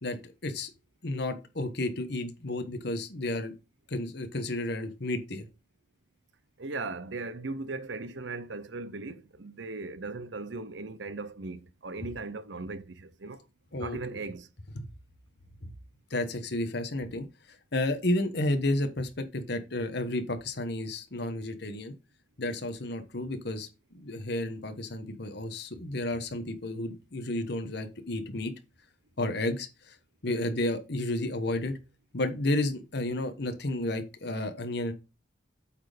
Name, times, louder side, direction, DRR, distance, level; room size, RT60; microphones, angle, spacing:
voice 1, 1.0-3.5 3.9-5.5 13.7-14.0 14.7-14.9 15.6-15.7 16.1-17.3 17.7-21.9 22.4-28.5 29.2-30.0 30.2-31.7 32.1-34.9, left 1 dB, 60° left, 1.2 m, -32 dB
voice 2, 6.6-13.4 13.8-14.5, right 3 dB, 70° right, 0.8 m, -38 dB
8.6 x 4.3 x 5.0 m
head